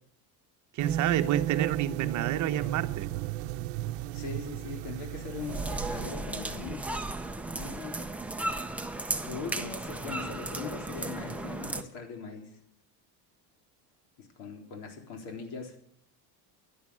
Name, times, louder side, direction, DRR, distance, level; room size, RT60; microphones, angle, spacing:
voice 1, 0.7-3.1, right 11 dB, 40° right, 1.0 m, -29 dB
sound 1, 0.8-6.1, right 14 dB, 80° right, 0.8 m, -34 dB
voice 2, 4.1-7.0 7.5-8.0 9.2-12.6 14.2-15.8, left 5 dB, 60° left, 3.8 m, -40 dB
sound 2, 5.3-11.8, right 2 dB, 5° right, 0.6 m, -35 dB
11.5 x 11.0 x 8.6 m
cardioid pair, 150°, 44 cm